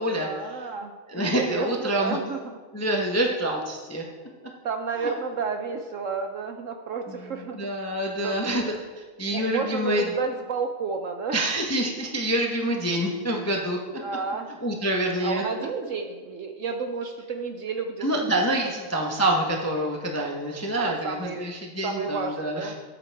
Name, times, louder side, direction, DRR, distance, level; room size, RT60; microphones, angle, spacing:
voice 1, 0.2-2.6 4.6-8.8 9.3-11.4 14.0-14.5 15.2-18.4 20.7-21.5 21.8-22.7, right 5 dB, 65° right, 5 dB, 0.8 m, -32 dB
voice 2, 1.1-2.2 2.7-4.0 5.0-5.1 7.1-8.7 9.2-10.0 11.3-13.8 14.6-15.4 18.0-22.7, right 1 dB, 15° left, 0 dB, 0.5 m, -26 dB
13.0 x 7.6 x 3.4 m, 1.4 s
omnidirectional pair, 1.8 m